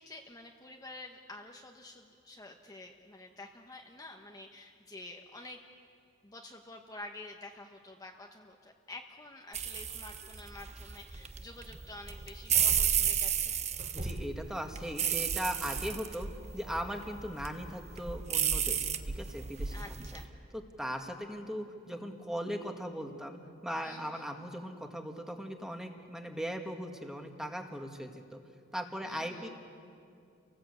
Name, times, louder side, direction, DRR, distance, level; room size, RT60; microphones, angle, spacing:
voice 1, 0.0-5.7 6.2-13.6 15.6-15.9 19.7-20.3 23.8-24.3 29.0-29.5, left 2 dB, 20° left, 1 dB, 1.1 m, -49 dB
sound 1, 9.5-20.2, right 8 dB, 35° right, 0.9 m, -33 dB
voice 2, 13.9-16.3 16.5-19.7 20.5-28.4 28.7-29.5, equal, 5° right, 3 dB, 1.8 m, -39 dB
29.5 x 19.0 x 8.3 m, 2.4 s
head